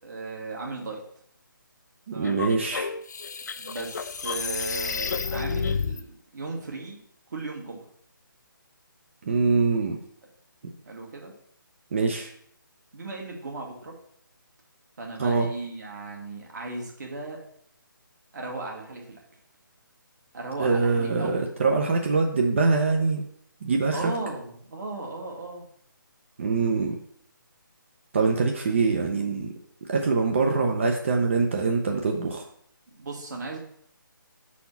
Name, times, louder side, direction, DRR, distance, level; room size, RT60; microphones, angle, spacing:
voice 1, 0.0-1.0 2.1-2.5 3.6-7.0 7.3-7.9 10.9-11.3 12.9-13.9 15.0-17.4 18.3-19.2 20.3-21.3 23.9-25.7 33.0-33.6, right 3 dB, 55° right, 0 dB, 1.9 m, -36 dB
voice 2, 2.1-2.9 9.2-10.0 10.6-10.7 11.9-12.3 15.2-15.5 20.6-23.3 23.6-24.0 26.4-27.0 28.1-29.5 29.9-32.4, right 4 dB, 35° right, 2 dB, 0.6 m, -24 dB
sound 1, 2.2-6.0, left 5 dB, 50° left, 0.4 m, -30 dB
5.7 x 4.2 x 5.3 m, 0.64 s
hypercardioid pair, 165°, 11 cm